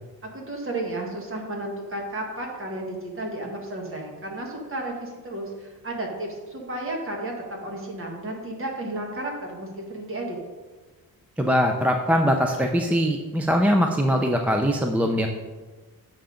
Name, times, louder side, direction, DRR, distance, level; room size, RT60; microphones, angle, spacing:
voice 1, 0.2-10.4, right 1 dB, 35° right, 0 dB, 1.5 m, -33 dB
voice 2, 11.4-15.3, equal, 5° right, 3 dB, 0.4 m, -22 dB
6.9 x 5.7 x 5.0 m, 1.3 s
wide cardioid pair, 160°, 38 cm